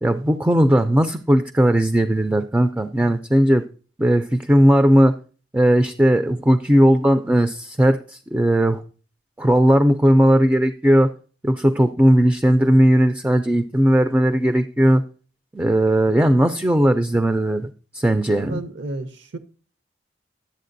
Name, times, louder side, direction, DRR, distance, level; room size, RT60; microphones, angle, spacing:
voice 1, 0.0-3.6 4.0-5.1 5.5-8.8 9.4-11.1 11.4-15.0 15.5-17.7 17.9-18.6, equal, 10° right, 8 dB, 0.3 m, -17 dB
voice 2, 18.3-19.4, right 2 dB, 75° right, 10 dB, 0.7 m, -33 dB
11.5 x 8.0 x 2.6 m, 0.39 s
head